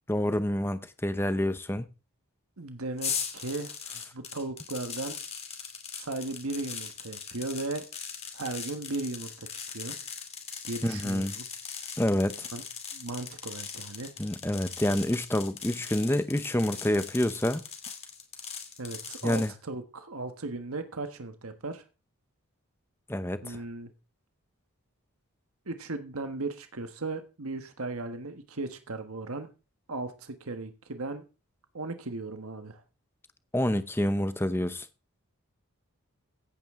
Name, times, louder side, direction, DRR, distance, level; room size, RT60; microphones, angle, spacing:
voice 1, 0.1-1.9 10.8-11.3 12.0-12.5 14.2-17.6 19.2-19.5 23.1-23.6 33.5-34.9, left 1 dB, 10° left, 0.7 m, -28 dB
voice 2, 2.6-3.7 4.1-5.2 6.0-7.9 8.3-9.9 10.6-11.5 12.5-12.6 12.9-14.1 18.8-21.8 23.4-23.9 25.7-29.5 29.9-31.2 31.7-32.8, right 2 dB, 75° right, 1.4 m, -36 dB
sound 1, 3.0-19.5, left 7 dB, 30° left, 2.5 m, -40 dB
16.0 x 8.8 x 3.7 m
head